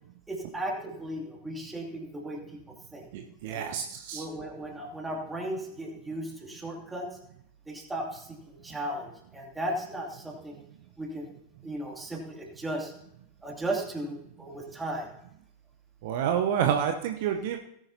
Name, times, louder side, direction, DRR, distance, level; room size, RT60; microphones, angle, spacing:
voice 1, 0.3-2.6 2.9-3.1 3.4-3.6 4.1-7.1 7.7-10.6 11.0-11.3 11.6-12.9 13.4-15.1, right 1 dB, 10° right, 0 dB, 2.6 m, -36 dB
voice 2, 3.1-4.2 16.0-17.6, right 8 dB, 50° right, 5 dB, 0.8 m, -28 dB
18.0 x 9.8 x 2.8 m, 0.77 s
figure-of-eight pair, 90°, 0 cm